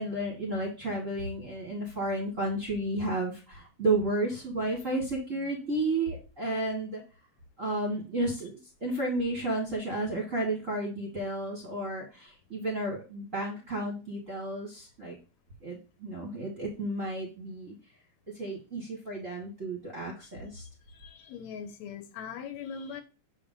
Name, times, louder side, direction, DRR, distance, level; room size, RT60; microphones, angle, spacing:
voice 1, 0.0-7.0 7.6-15.2 15.6-17.7 18.3-20.6, right 2 dB, 40° right, 1.3 m, -32 dB
voice 2, 20.9-23.0, left 6 dB, 75° left, 2.0 m, -41 dB
7.0 x 4.8 x 3.7 m
omnidirectional pair, 3.3 m